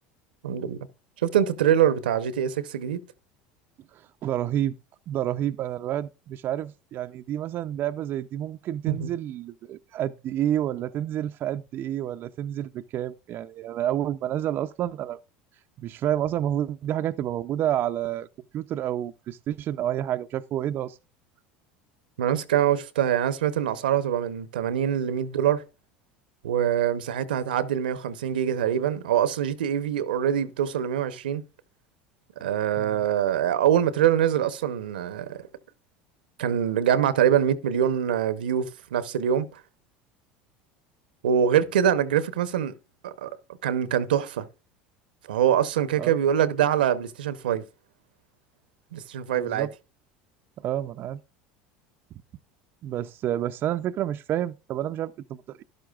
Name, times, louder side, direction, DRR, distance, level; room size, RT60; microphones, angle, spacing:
voice 1, 0.4-0.9 1.2-3.0 8.9-9.1 22.2-25.6 26.4-31.4 32.4-35.5 36.4-39.6 41.2-42.7 43.0-43.4 43.6-44.5 45.3-47.6 48.9-49.7, right 9 dB, 85° right, 0.9 m, -24 dB
voice 2, 3.9-4.7 5.1-15.2 15.8-18.3 18.5-21.0 32.8-33.0 46.0-46.2 49.3-49.7 50.6-51.2 52.8-55.6, right 11 dB, 45° right, 0.5 m, -29 dB
13.0 x 11.5 x 2.4 m
hypercardioid pair, 90°, 5 cm